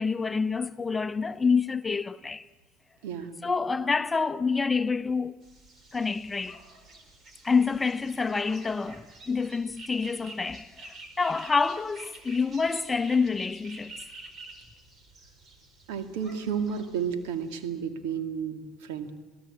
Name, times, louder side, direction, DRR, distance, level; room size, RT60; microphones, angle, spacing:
voice 1, 0.0-2.5 3.4-5.4 5.9-6.6 7.4-14.0, left 4 dB, 20° left, 0.9 m, -27 dB
voice 2, 3.0-3.4 15.9-19.1, right 7 dB, 75° right, 2.2 m, -32 dB
sound 1, 5.4-17.5, right 2 dB, 45° right, 4.7 m, -49 dB
26.5 x 17.5 x 8.7 m
hypercardioid pair, 75°, 0 cm